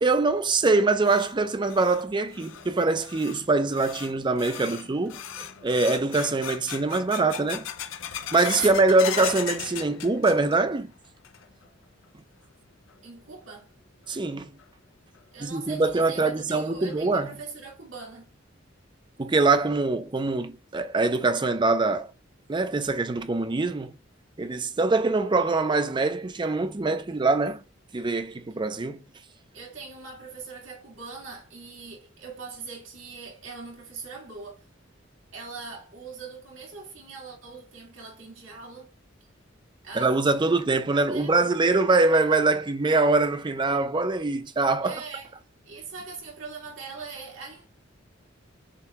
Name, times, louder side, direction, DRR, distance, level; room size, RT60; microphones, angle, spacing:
voice 1, 0.0-5.2 5.6-7.7 8.3-10.9 14.1-14.6 15.4-17.4 19.2-22.1 22.5-23.9 24.4-27.6 27.9-29.0 39.9-45.0, right 3 dB, 25° right, 0.5 m, -23 dB
sound 1, 1.0-10.8 11.0-11.7 12.0-12.1 12.9-13.0 14.6-14.7 15.2-15.3 15.7-15.8 16.3-16.4 16.9-17.3, left 9 dB, 85° left, 0.5 m, -38 dB
voice 2, 13.0-13.7 15.3-18.3 29.5-34.6 35.3-38.9 39.8-40.6 40.9-41.5 44.8-45.3 45.6-47.7, right 4 dB, 85° right, 2.1 m, -41 dB
6.5 x 2.3 x 2.9 m
head